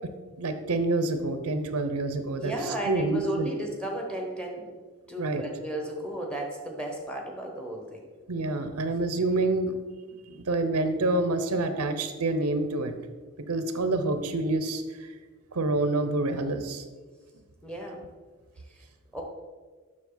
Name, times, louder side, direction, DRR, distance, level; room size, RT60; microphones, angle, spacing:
voice 1, 0.4-2.5 2.9-3.5 5.2-5.4 8.3-9.7 10.3-12.9 13.5-15.1 15.5-16.8, right 2 dB, 90° right, 8 dB, 0.7 m, -27 dB
voice 2, 2.4-4.7 5.1-8.0 17.6-18.0 19.1-19.2, right 1 dB, 5° left, 0 dB, 1.0 m, -34 dB
7.4 x 6.1 x 3.9 m, 1.4 s
head